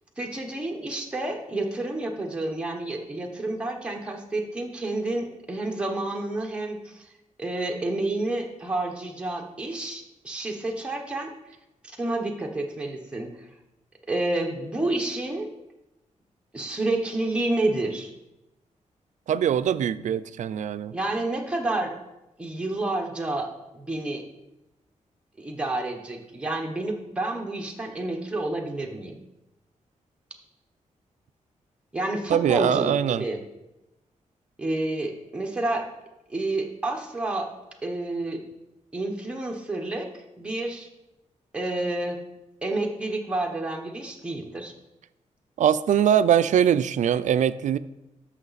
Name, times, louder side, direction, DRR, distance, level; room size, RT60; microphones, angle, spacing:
voice 1, 0.2-7.0 7.4-11.3 11.9-13.3 14.1-15.5 16.5-18.1 20.9-21.9 22.4-23.5 23.7-24.2 25.4-29.1 31.9-33.4 34.6-35.9 36.3-37.5 37.8-38.4 38.9-40.1 40.4-40.9 41.5-42.2 42.6-44.7, right 2 dB, 10° right, 1 dB, 1.0 m, -29 dB
voice 2, 19.3-20.9 32.3-33.2 45.6-47.8, right 9 dB, 75° right, 14 dB, 0.4 m, -22 dB
13.0 x 5.7 x 4.1 m, 0.95 s
wide cardioid pair, 160°, 13 cm